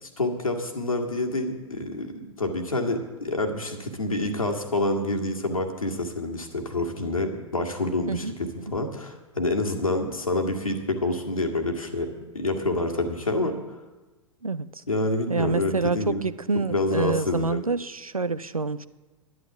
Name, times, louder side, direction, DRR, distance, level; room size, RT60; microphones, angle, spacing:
voice 1, 0.2-13.6 14.9-16.2 16.5-17.6, left 2 dB, 80° left, 4 dB, 1.9 m, -27 dB
voice 2, 14.4-14.8 15.3-18.9, right 4 dB, 90° right, 17 dB, 0.5 m, -27 dB
11.5 x 10.5 x 7.2 m, 1.2 s
figure-of-eight pair, 100°, 18 cm